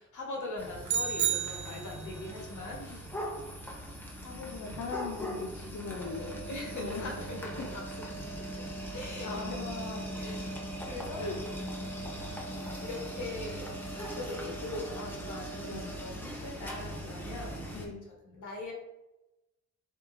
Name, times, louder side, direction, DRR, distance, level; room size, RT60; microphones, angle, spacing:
voice 1, 0.0-3.1 6.4-9.6 10.0-11.3 12.8-17.9 18.2-18.7, left 2 dB, 85° left, -1 dB, 1.1 m, -42 dB
sound 1, 0.6-17.9, equal, 5° left, 0.6 m, -40 dB
sound 2, 0.9-2.2, right 8 dB, 65° right, 0.5 m, -31 dB
voice 2, 4.2-7.2 7.6-7.7 9.2-10.0 11.2-11.4 15.6-16.0 17.7-18.0, left 4 dB, 65° left, 0 dB, 0.5 m, -40 dB
sound 3, 6.0-16.0, right 8 dB, 45° right, 0.8 m, -47 dB
3.8 x 3.6 x 2.5 m, 0.95 s
wide cardioid pair, 165°, 29 cm